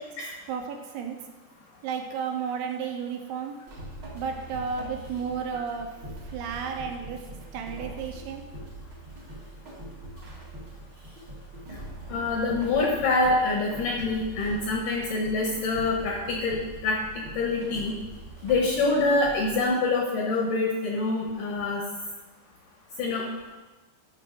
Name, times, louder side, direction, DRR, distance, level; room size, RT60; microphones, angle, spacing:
voice 1, 0.5-1.2 1.8-3.6 4.1-5.9 6.3-7.2 7.5-8.4, right 6 dB, 80° right, 4 dB, 2.6 m, -32 dB
sound 1, 3.7-19.6, right 1 dB, 50° right, 1.4 m, -42 dB
voice 2, 12.1-16.6 16.8-17.9 18.4-21.8 23.0-23.2, left 3 dB, 75° left, -2 dB, 2.1 m, -26 dB
12.5 x 5.9 x 3.8 m, 1.2 s
omnidirectional pair, 4.9 m